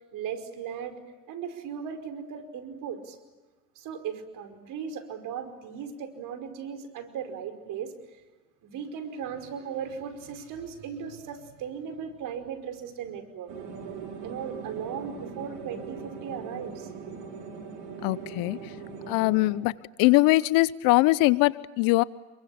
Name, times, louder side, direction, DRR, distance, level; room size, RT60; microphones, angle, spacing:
voice 1, 0.1-1.0 1.3-3.2 3.7-7.9 8.6-13.5 14.2-16.9, right 7 dB, 60° right, 8 dB, 5.1 m, -37 dB
sound 1, 13.5-19.5, right 5 dB, 80° right, 6.6 m, -40 dB
voice 2, 18.0-18.6 19.1-19.7 20.0-22.0, left 20 dB, 70° left, 19 dB, 0.8 m, -22 dB
28.5 x 23.0 x 8.6 m, 1.2 s
supercardioid pair, 85°, 36 cm